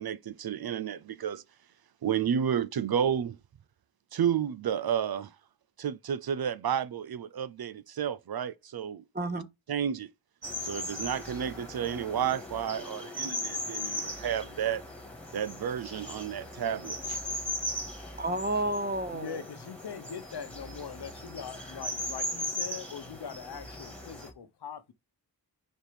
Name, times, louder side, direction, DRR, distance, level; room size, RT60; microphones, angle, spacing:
voice 1, 0.0-1.4 2.0-3.4 4.1-5.3 5.8-9.0 9.7-10.1 10.6-14.8 15.3-17.2, right 8 dB, 65° right, 0.6 m, -31 dB
voice 2, 9.1-9.5 18.2-19.4, right 1 dB, 25° right, 1.1 m, -30 dB
sound 1, 10.4-24.3, left 1 dB, 5° left, 1.9 m, -38 dB
voice 3, 19.1-24.9, left 7 dB, 80° left, 1.1 m, -42 dB
4.4 x 4.4 x 5.0 m
wide cardioid pair, 100°, 39 cm